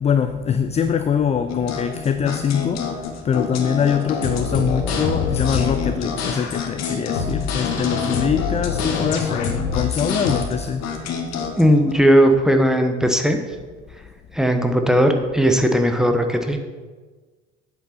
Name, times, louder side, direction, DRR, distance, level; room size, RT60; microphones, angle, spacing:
voice 1, 0.0-3.0 3.2-10.9, left 7 dB, 20° left, 9 dB, 0.4 m, -23 dB
sound 1, 1.5-11.9, left 6 dB, 50° left, 1.4 m, -29 dB
sound 2, 4.0-10.5, left 5 dB, 65° left, 1.3 m, -26 dB
voice 2, 11.6-13.4 14.3-16.6, equal, ahead, 5 dB, 1.1 m, -17 dB
8.3 x 6.8 x 5.9 m, 1.4 s
figure-of-eight pair, 50°, 35 cm